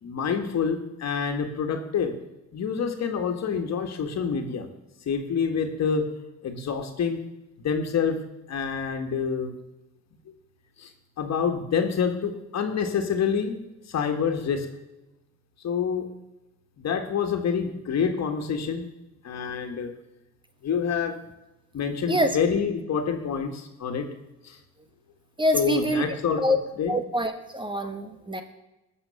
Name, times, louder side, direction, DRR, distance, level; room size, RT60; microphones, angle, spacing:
voice 1, 0.0-2.2 2.5-4.7 5.1-6.1 6.4-7.2 7.6-8.2 8.5-9.5 10.8-10.9 11.2-13.6 13.9-14.7 15.6-16.1 16.8-18.8 19.2-19.9 20.6-21.2 21.7-24.1 24.4-24.6 25.5-26.4 26.8-27.0, left 6 dB, 60° left, 5 dB, 1.9 m, -27 dB
voice 2, 25.4-26.0 26.4-26.6 26.9-28.4, equal, 15° right, 7 dB, 1.4 m, -25 dB
19.5 x 6.9 x 7.1 m, 0.96 s
cardioid pair, 90°, 30 cm